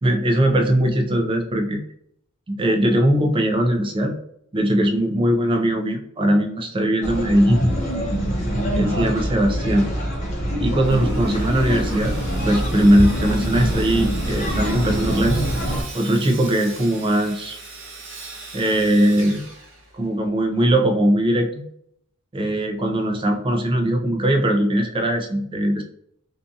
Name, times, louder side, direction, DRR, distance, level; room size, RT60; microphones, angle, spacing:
voice 1, 0.0-1.8 2.5-4.2 4.5-7.6 8.7-9.9 10.6-12.2 12.5-15.4 15.9-17.6 18.5-19.4 19.9-21.7 22.3-25.8, right 1 dB, 25° right, 3 dB, 0.4 m, -20 dB
sound 1, 7.0-15.8, equal, 35° left, 0.6 m, -24 dB
Sawing, 10.8-20.3, right 3 dB, 60° right, 0.7 m, -39 dB
2.6 x 2.3 x 2.5 m, 0.71 s
head